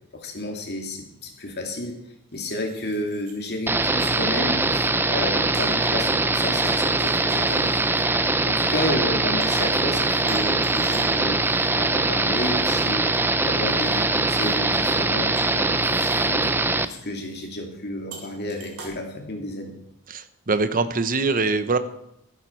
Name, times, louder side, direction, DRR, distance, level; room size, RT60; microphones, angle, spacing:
voice 1, 0.1-2.0 2.3-7.9 8.5-11.4 11.7-13.2 13.4-16.5 16.8-19.7, left 1 dB, 50° left, 2 dB, 2.5 m, -31 dB
sound 1, 0.8-0.9 2.3-3.6 4.0-4.2 4.6-8.7 9.4-9.9 10.3-13.2 13.6-14.6 14.9-15.3 15.8-16.5 16.8-16.9 17.2-17.5 18.1-18.9, right 4 dB, 70° right, 3.3 m, -46 dB
sound 2, 3.7-16.9, right 2 dB, 10° right, 0.5 m, -22 dB
voice 2, 20.1-21.8, right 3 dB, 40° right, 11 dB, 0.8 m, -23 dB
13.5 x 11.0 x 4.5 m, 0.81 s
head